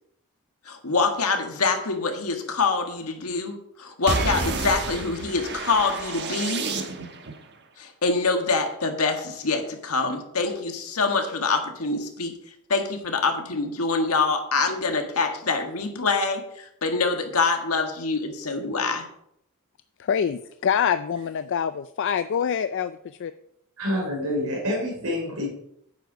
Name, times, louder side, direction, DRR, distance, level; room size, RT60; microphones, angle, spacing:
voice 1, 0.7-6.6 7.8-12.3 12.7-19.1, left 4 dB, 80° left, 1.6 m, -25 dB
sound 1, 4.1-7.3, right 3 dB, 50° right, 1.2 m, -29 dB
voice 2, 20.0-23.3, left 7 dB, 55° left, 0.4 m, -25 dB
voice 3, 23.8-25.5, left 1 dB, 75° right, 3.2 m, -27 dB
9.2 x 8.0 x 5.0 m
head